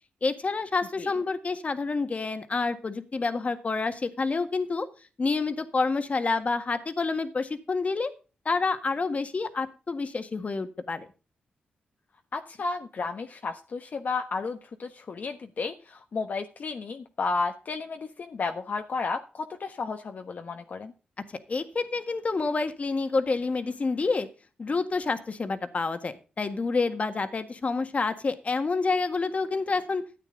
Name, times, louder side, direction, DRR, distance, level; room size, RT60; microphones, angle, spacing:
voice 1, 0.2-4.9 5.2-8.1 8.5-11.1 21.5-24.3 24.6-30.0, left 4 dB, 45° left, 8 dB, 1.7 m, -28 dB
voice 2, 12.3-20.9, left 4 dB, 60° left, 5 dB, 1.2 m, -33 dB
13.0 x 8.9 x 3.9 m, 0.34 s
cardioid pair, 65°, 3 cm